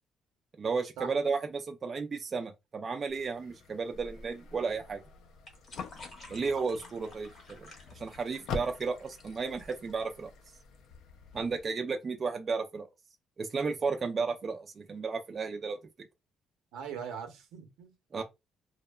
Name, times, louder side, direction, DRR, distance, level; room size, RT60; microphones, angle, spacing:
voice 1, 0.6-5.0 6.3-10.3 11.3-12.9 13.4-15.8 18.1-18.2, right 4 dB, 25° right, 0.3 m, -33 dB
sound 1, 3.1-11.6, left 6 dB, 60° left, 0.3 m, -46 dB
sound 2, 3.9-11.0, left 2 dB, 35° left, 0.9 m, -52 dB
voice 2, 16.7-18.2, right 7 dB, 85° right, 0.8 m, -41 dB
2.7 x 2.1 x 2.2 m
cardioid pair, 170°, 0 cm